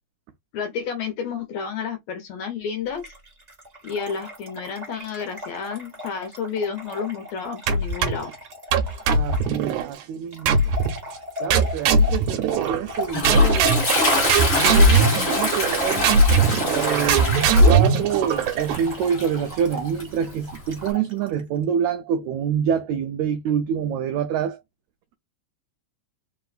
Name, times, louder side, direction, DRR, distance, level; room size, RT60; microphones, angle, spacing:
voice 1, 0.5-3.1 3.8-8.3, left 6 dB, 75° left, 1.7 m, -30 dB
Trickle dribble / Fill (with liquid), 2.9-21.4, left 1 dB, 40° right, 0.5 m, -38 dB
sound 1, 7.7-8.3 8.7-9.9 10.5-11.0 11.5-13.0 13.2-18.9, right 3 dB, 75° right, 2.0 m, -19 dB
voice 2, 9.1-10.6 11.4-13.8 14.6-16.1 16.7-24.6, right 8 dB, 90° right, 1.6 m, -26 dB
Toilet flush, 12.6-20.9, left 2 dB, 45° left, 0.8 m, -26 dB
4.3 x 3.8 x 2.4 m
omnidirectional pair, 3.8 m